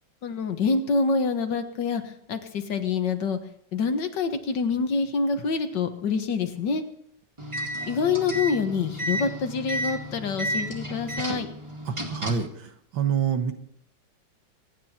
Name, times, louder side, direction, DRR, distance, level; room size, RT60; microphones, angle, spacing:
voice 1, 0.2-3.4 3.7-6.8 7.9-11.5, left 4 dB, 65° left, 7 dB, 1.9 m, -26 dB
sound 1, 7.4-12.5, equal, 15° right, 2.1 m, -32 dB
voice 2, 11.9-13.5, right 7 dB, 85° right, 7 dB, 2.1 m, -27 dB
25.0 x 9.7 x 4.4 m, 0.69 s
omnidirectional pair, 2.1 m